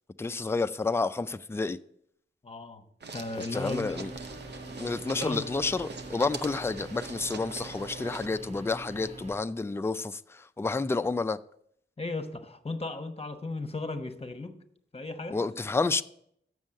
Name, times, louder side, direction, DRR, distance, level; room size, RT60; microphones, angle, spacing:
voice 1, 0.2-1.8 3.5-4.1 4.8-11.4 15.3-16.0, left 3 dB, 15° left, 0.3 m, -30 dB
voice 2, 2.4-2.8 3.1-4.0 5.1-5.5 12.0-14.6 14.9-15.4, left 2 dB, 30° left, 1.0 m, -36 dB
sound 1, 3.0-8.3, right 4 dB, 60° right, 0.7 m, -43 dB
sound 2, 3.7-9.4, right 1 dB, 35° right, 0.9 m, -45 dB
7.3 x 6.2 x 6.3 m
wide cardioid pair, 70°, 19 cm